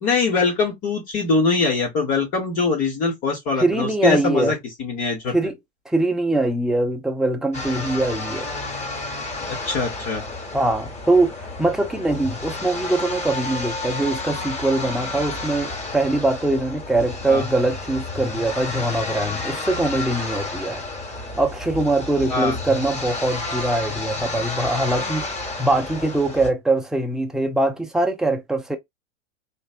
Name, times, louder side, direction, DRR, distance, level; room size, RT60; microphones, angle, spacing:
voice 1, 0.0-5.3 9.5-10.2 17.3-17.4 22.3-22.6, left 4 dB, 40° left, 1.3 m, -22 dB
voice 2, 3.6-4.5 5.3-5.6 5.9-8.5 10.5-20.8 21.4-25.3 25.6-28.8, right 2 dB, ahead, 0.5 m, -22 dB
sound 1, 7.5-26.5, left 2 dB, 20° left, 1.4 m, -31 dB
3.1 x 2.6 x 2.4 m
hypercardioid pair, 105°, 35 cm